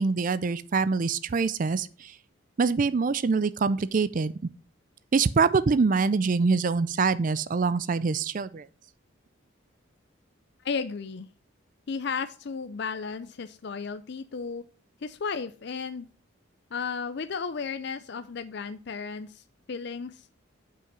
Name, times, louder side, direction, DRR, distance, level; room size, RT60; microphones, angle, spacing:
voice 1, 0.0-2.1 2.6-4.3 5.1-8.6, right 4 dB, 40° right, 0.4 m, -24 dB
voice 2, 10.6-11.3 11.9-14.6 15.0-16.1 16.7-19.4 19.7-20.2, left 5 dB, 55° left, 0.5 m, -34 dB
7.7 x 5.6 x 5.2 m
head